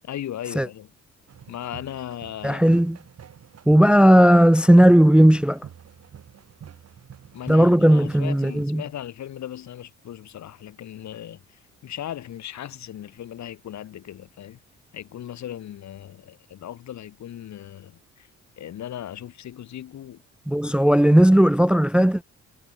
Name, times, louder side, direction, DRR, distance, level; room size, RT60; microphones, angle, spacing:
voice 1, 0.0-0.9 1.5-2.8 7.3-14.6 14.9-18.3 18.6-20.2, left 11 dB, 65° left, 2.4 m, -37 dB
sound 1, 1.3-8.6, right 8 dB, 55° right, 4.8 m, -46 dB
voice 2, 2.4-3.0 3.7-5.6 7.5-8.8 20.5-22.2, equal, 5° right, 0.5 m, -16 dB
cardioid pair, 90°, 30 cm